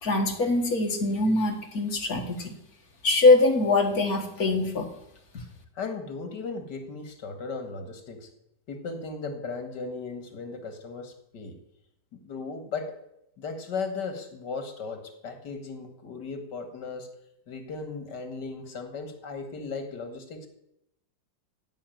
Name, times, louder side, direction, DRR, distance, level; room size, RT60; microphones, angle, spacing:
voice 1, 0.0-2.6 3.0-4.9, left 2 dB, 60° left, 3 dB, 2.2 m, -23 dB
voice 2, 5.8-8.3 8.7-11.6 12.1-13.0 13.4-17.1 17.5-20.5, left 4 dB, 80° left, 6 dB, 2.4 m, -36 dB
14.5 x 5.9 x 9.2 m, 0.80 s
omnidirectional pair, 1.8 m